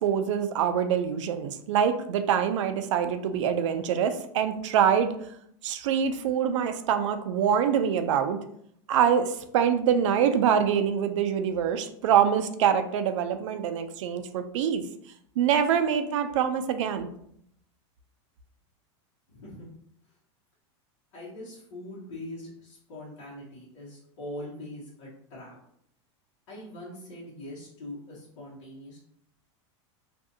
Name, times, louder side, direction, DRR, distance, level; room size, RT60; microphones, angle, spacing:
voice 1, 0.0-5.3 5.6-8.4 8.9-14.8 15.4-17.1, right 8 dB, 85° right, 9 dB, 0.4 m, -25 dB
voice 2, 19.3-19.7 21.1-25.6 26.5-29.0, left 1 dB, 80° left, -7 dB, 1.2 m, -42 dB
2.6 x 2.4 x 2.6 m, 0.69 s
supercardioid pair, 150°, 15 cm